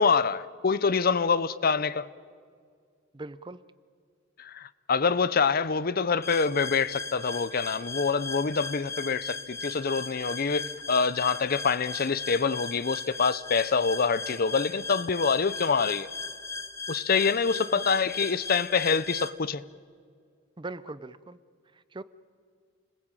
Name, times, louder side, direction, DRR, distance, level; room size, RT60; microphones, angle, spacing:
voice 1, 0.0-2.1 4.4-16.1 16.9-19.6, left 5 dB, 50° left, 0.7 m, -26 dB
voice 2, 3.1-3.6 17.8-17.9 20.6-21.4 21.7-22.0, right 2 dB, 25° right, 0.6 m, -40 dB
sound 1, 6.2-19.3, left 4 dB, 15° left, 1.3 m, -38 dB
29.5 x 20.5 x 9.0 m
head